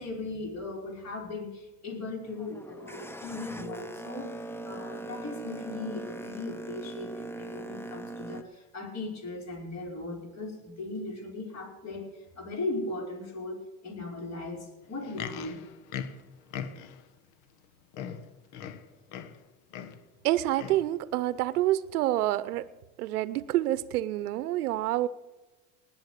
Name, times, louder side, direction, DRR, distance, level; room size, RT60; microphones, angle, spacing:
voice 1, 0.0-4.4 4.7-15.6, left 2 dB, 35° left, 0 dB, 5.6 m, -38 dB
Boat Water vehicle, 2.2-8.4, right 1 dB, 5° left, 0.8 m, -40 dB
Livestock farm animals working animals, 14.8-17.1 17.6-17.7 17.9-19.4 19.7-20.0 20.6-20.9 21.6-21.7, left 8 dB, 65° left, 1.5 m, -40 dB
voice 2, 20.2-22.7 23.0-25.1, right 14 dB, 90° right, 17 dB, 0.8 m, -27 dB
19.5 x 7.9 x 6.7 m, 1.1 s
supercardioid pair, 100°, 44 cm